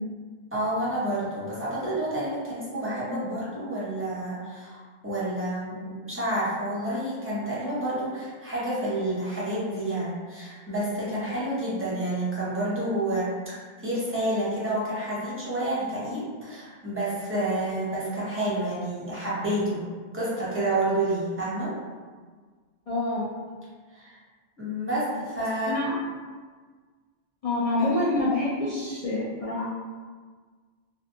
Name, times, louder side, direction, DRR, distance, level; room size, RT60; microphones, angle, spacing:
voice 1, 0.5-13.6 13.8-19.8 20.1-21.7 23.9-24.2 24.6-25.7 27.8-27.9, right 1 dB, 15° right, -9 dB, 0.6 m, -29 dB
voice 2, 22.9-23.3 25.6-25.9 27.4-29.7, left 2 dB, 75° left, -8 dB, 0.3 m, -26 dB
2.6 x 2.2 x 2.5 m, 1.5 s
omnidirectional pair, 1.2 m